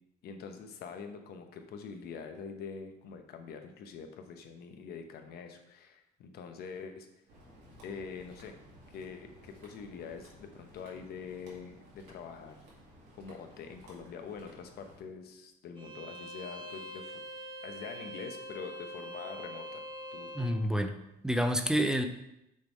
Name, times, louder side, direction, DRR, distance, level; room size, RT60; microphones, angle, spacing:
voice 1, 0.2-7.1 7.8-8.5 8.9-12.6 13.2-17.2 17.6-19.8 20.1-20.3, left 5 dB, 70° left, 6 dB, 0.9 m, -45 dB
sound 1, 7.3-15.0, equal, 85° right, 2.3 m, -56 dB
Bowed string instrument, 15.8-20.6, equal, 30° right, 1.1 m, -44 dB
voice 2, 20.3-21.0 21.2-22.1, equal, 5° right, 6 dB, 0.5 m, -28 dB
6.7 x 3.6 x 4.6 m, 0.85 s
cardioid pair, 110°, 17 cm